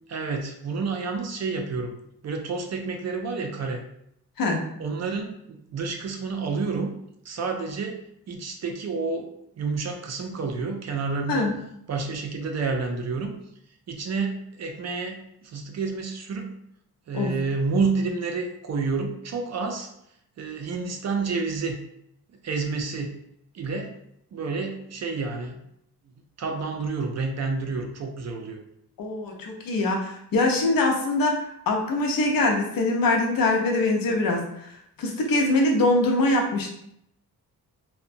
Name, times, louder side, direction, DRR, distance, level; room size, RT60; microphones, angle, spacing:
voice 1, 0.1-1.9 2.2-3.8 4.8-6.9 7.2-8.0 8.3-9.3 9.6-11.5 11.9-13.3 13.9-16.5 17.1-19.9 20.4-21.8 22.4-23.1 23.5-23.9 24.3-25.6 26.4-28.6, right 4 dB, 45° right, 3 dB, 0.4 m, -29 dB
voice 2, 29.0-34.7 35.0-36.7, left 2 dB, 65° left, 1 dB, 0.7 m, -23 dB
2.7 x 2.2 x 2.5 m, 0.74 s
cardioid pair, 115°, 38 cm